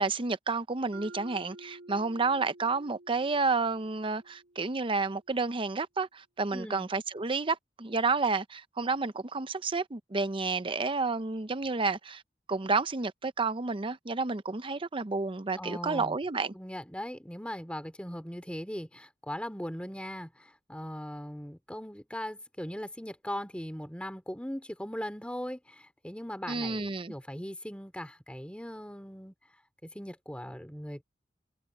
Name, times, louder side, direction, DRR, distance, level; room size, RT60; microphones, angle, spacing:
voice 1, 0.0-12.2 12.5-16.5 26.5-27.1, right 4 dB, 30° right, 0.7 m, -30 dB
Mallet percussion, 0.9-5.0, right 2 dB, 90° right, 3.0 m, -51 dB
voice 2, 6.5-6.9 15.6-16.2 16.5-29.3 29.8-31.0, equal, 5° left, 2.7 m, -39 dB
head